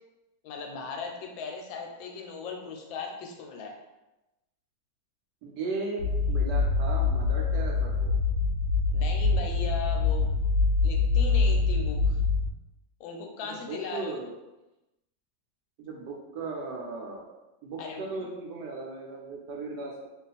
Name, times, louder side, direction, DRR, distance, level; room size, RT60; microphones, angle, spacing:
voice 1, 0.4-3.7 8.9-10.3 10.8-12.2 13.0-14.2 17.8-18.1, left 4 dB, 85° left, 2 dB, 1.4 m, -38 dB
voice 2, 5.4-8.1 13.4-14.3 15.8-17.3 17.6-20.1, right 3 dB, 70° right, -1 dB, 1.0 m, -37 dB
sound 1, 6.0-12.5, left 4 dB, 55° left, 0.9 m, -25 dB
3.0 x 2.4 x 4.0 m, 1.0 s
omnidirectional pair, 2.1 m